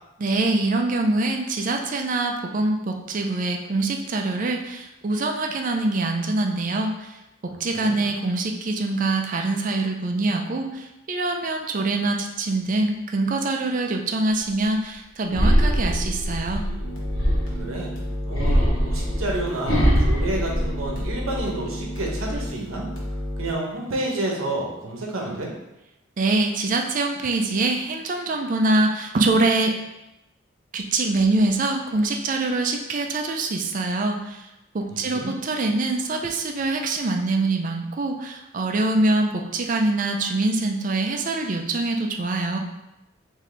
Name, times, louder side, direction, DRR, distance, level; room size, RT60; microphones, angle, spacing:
voice 1, 0.2-7.1 7.4-16.7 26.2-29.8 30.7-34.5 34.7-42.6, right 2 dB, 40° right, 4 dB, 0.4 m, -24 dB
sound 1, 15.3-17.7 18.3-21.4 21.8-22.4, equal, 80° left, 0.8 m, -22 dB
sound 2, 16.8-23.5, equal, 65° left, 1.0 m, -32 dB
voice 2, 17.6-17.9 18.3-22.9 23.4-25.5 34.9-35.3, right 2 dB, 85° right, -1 dB, 0.8 m, -30 dB
3.8 x 2.7 x 3.3 m, 0.93 s
head